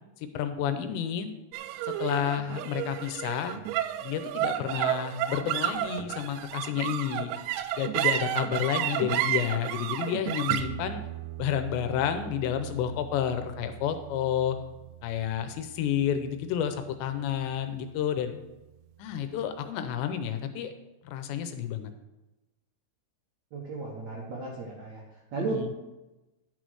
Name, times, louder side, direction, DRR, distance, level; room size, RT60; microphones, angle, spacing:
voice 1, 0.2-1.3 1.8-3.6 4.0-7.3 7.8-11.0 11.4-14.6 15.0-18.4 19.0-20.7 21.0-21.9 25.5-25.7, left 9 dB, 80° left, 8 dB, 2.9 m, -30 dB
sound 1, 1.5-18.1, right 12 dB, 90° right, 2.9 m, -33 dB
voice 2, 23.5-25.0 25.3-25.8, right 3 dB, 70° right, -4 dB, 1.8 m, -34 dB
10.5 x 6.3 x 4.8 m, 1.0 s
omnidirectional pair, 5.2 m